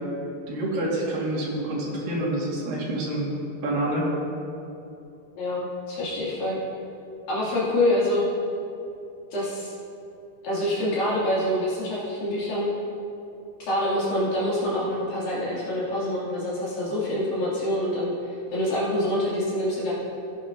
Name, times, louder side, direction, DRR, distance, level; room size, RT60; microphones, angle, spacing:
voice 1, 0.5-3.3 3.6-4.1, right 1 dB, 65° right, -4 dB, 3.5 m, -27 dB
voice 2, 5.3-6.6 7.3-8.2 9.3-9.7 10.4-12.7 13.6-19.9, left 1 dB, 65° left, -9 dB, 4.2 m, -26 dB
16.0 x 10.5 x 2.7 m, 2.8 s
omnidirectional pair, 4.5 m